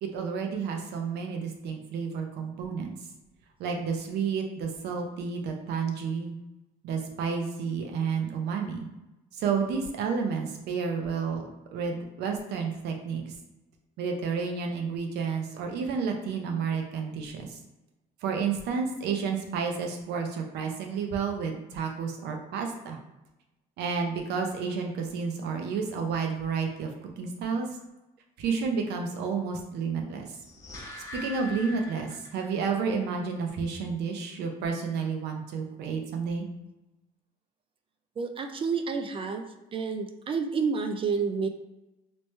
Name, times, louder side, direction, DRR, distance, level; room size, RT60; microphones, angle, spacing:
voice 1, 0.0-2.9 3.6-6.3 6.8-8.9 9.3-13.3 14.0-17.6 18.2-23.0 23.8-27.7 28.4-30.4 31.1-36.5, right 5 dB, 80° right, 3 dB, 0.7 m, -31 dB
sound 1, 30.2-32.7 33.0-33.1, left 2 dB, 20° left, 1.2 m, -42 dB
voice 2, 38.2-41.5, right 5 dB, 30° right, 6 dB, 0.3 m, -29 dB
3.0 x 3.0 x 3.2 m, 0.99 s
cardioid pair, 110°, 17 cm